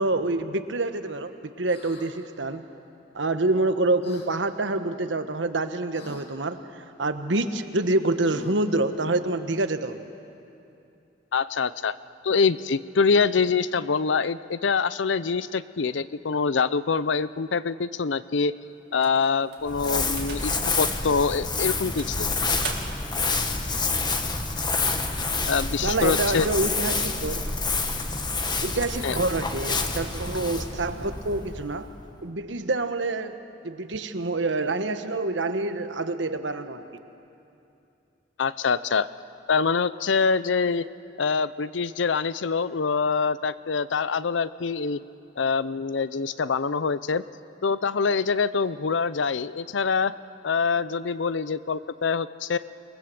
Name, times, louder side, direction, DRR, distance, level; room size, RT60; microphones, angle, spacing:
voice 1, 0.0-1.3 1.6-2.6 3.1-10.1 25.8-27.4 28.6-31.9 32.2-36.8, right 2 dB, 85° right, 9 dB, 1.2 m, -27 dB
sound 1, 1.7-2.1 4.0-4.3 5.9-6.3 8.2-8.7, left 2 dB, 65° left, 3.3 m, -46 dB
voice 2, 11.3-11.9 12.2-18.5 18.9-22.3 25.5-26.5 29.0-29.2 38.4-39.1 39.5-40.9 41.2-45.0 45.4-47.2 47.6-50.1 50.4-52.6, left 5 dB, 90° left, 16 dB, 0.6 m, -25 dB
sound 2, 19.0-20.7 21.3-21.4 22.0-23.2, right 6 dB, 65° right, 2.2 m, -40 dB
Crumpling crinkling, 19.6-32.1, left 3 dB, 25° left, 1.5 m, -28 dB
28.0 x 20.5 x 7.8 m, 2.7 s
head